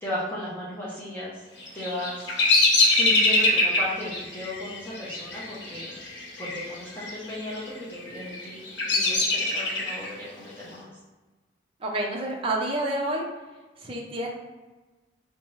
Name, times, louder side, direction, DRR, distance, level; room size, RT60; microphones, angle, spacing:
voice 1, 0.0-1.4 1.7-2.3 2.9-6.0 6.4-10.9, left 1 dB, 10° left, -9 dB, 0.7 m, -35 dB
Bird vocalization bird call bird song, 1.6-6.7 6.9-7.5 8.1-10.1, left 2 dB, 80° left, 0.8 m, -23 dB
voice 2, 11.8-13.2 13.8-14.3, right 1 dB, 30° right, -1 dB, 0.6 m, -28 dB
3.3 x 2.9 x 3.1 m, 1.2 s
head